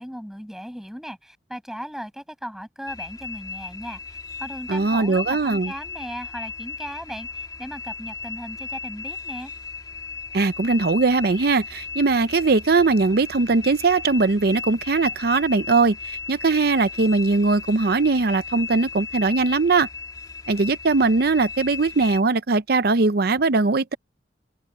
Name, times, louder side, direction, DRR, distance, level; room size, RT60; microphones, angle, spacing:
voice 1, 0.0-9.5, equal, ahead, 6.3 m, -37 dB
sound 1, 2.9-22.2, left 5 dB, 20° left, 1.9 m, -36 dB
voice 2, 4.7-5.7 10.3-19.9 20.5-24.0, right 3 dB, 55° right, 0.6 m, -20 dB
open air
head